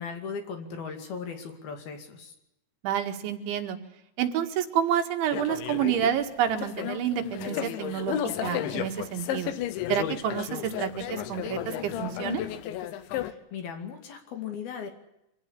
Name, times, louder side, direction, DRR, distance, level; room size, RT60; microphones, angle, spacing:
voice 1, 0.0-2.3 13.1-14.9, left 6 dB, 60° left, 5 dB, 4.1 m, -38 dB
voice 2, 2.8-3.8 4.2-9.5 9.9-12.4, right 9 dB, 80° right, 5 dB, 4.2 m, -29 dB
sound 1, 5.3-13.3, left 11 dB, 80° left, 3.6 m, -33 dB
25.5 x 16.5 x 9.8 m, 0.84 s
omnidirectional pair, 5.3 m